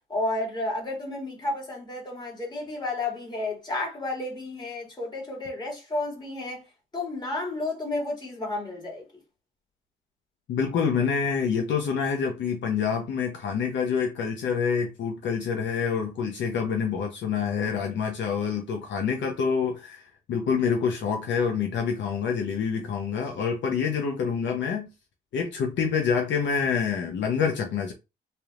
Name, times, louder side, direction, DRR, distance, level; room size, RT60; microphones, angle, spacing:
voice 1, 0.1-6.6 6.9-9.0, left 2 dB, 20° left, 2.4 m, -31 dB
voice 2, 10.5-24.9 25.3-27.9, left 6 dB, 65° left, 0.9 m, -27 dB
4.1 x 3.5 x 2.5 m
cardioid pair, 90°, 20 cm